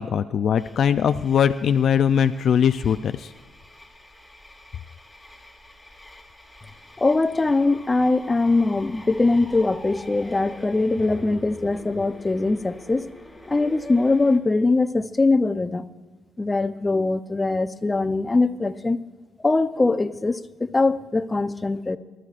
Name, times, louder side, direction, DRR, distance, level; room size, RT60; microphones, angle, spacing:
voice 1, 0.0-3.3, left 8 dB, 60° left, 10 dB, 0.4 m, -21 dB
sound 1, 0.6-14.4, left 1 dB, 5° left, 2.1 m, -45 dB
voice 2, 7.0-13.1 13.5-15.9 16.4-19.0 19.4-22.0, left 3 dB, 20° left, 10 dB, 0.6 m, -22 dB
23.0 x 12.5 x 2.5 m, 1.4 s
cardioid pair, 90°, 0 cm